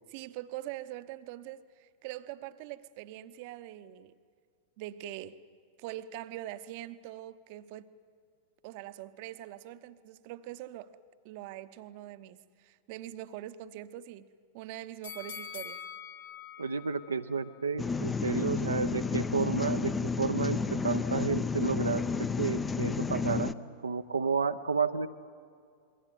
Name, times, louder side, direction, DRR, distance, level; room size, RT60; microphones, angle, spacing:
voice 1, 0.1-4.1 4.8-5.4 5.8-7.9 8.6-10.9 11.2-15.8, right 13 dB, 45° right, 12 dB, 0.9 m, -43 dB
sound 1, 15.0-18.1 18.5-18.6, left 6 dB, 65° left, 2.6 m, -45 dB
voice 2, 16.6-23.5 23.8-25.1, right 5 dB, 75° right, 6 dB, 0.7 m, -31 dB
sound 2, 17.8-23.5, left 4 dB, 15° left, 0.7 m, -31 dB
28.0 x 22.5 x 9.2 m, 2.3 s
figure-of-eight pair, 90°, 0 cm